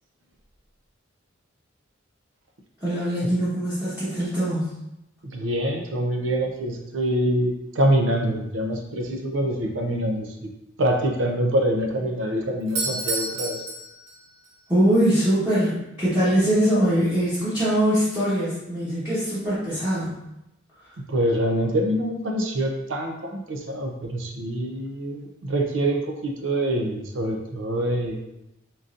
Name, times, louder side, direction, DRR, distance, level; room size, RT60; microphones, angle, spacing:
voice 1, 2.8-4.8 14.7-20.2, right 1 dB, 10° right, -14 dB, 1.2 m, -22 dB
voice 2, 5.2-10.5 10.8-13.6 21.1-28.2, right 1 dB, 70° right, 2 dB, 0.6 m, -25 dB
Doorbell, 12.6-14.6, right 2 dB, 90° right, 1.0 m, -30 dB
3.9 x 3.8 x 2.5 m, 0.88 s
head